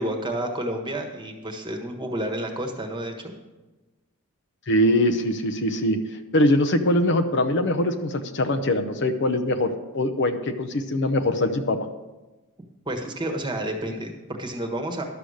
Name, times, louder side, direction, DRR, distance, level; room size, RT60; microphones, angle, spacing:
voice 1, 0.0-3.3 12.8-15.0, right 1 dB, 20° right, 3 dB, 1.3 m, -30 dB
voice 2, 4.7-11.8, left 1 dB, 55° left, 8 dB, 0.7 m, -22 dB
11.5 x 6.9 x 6.4 m, 1.1 s
head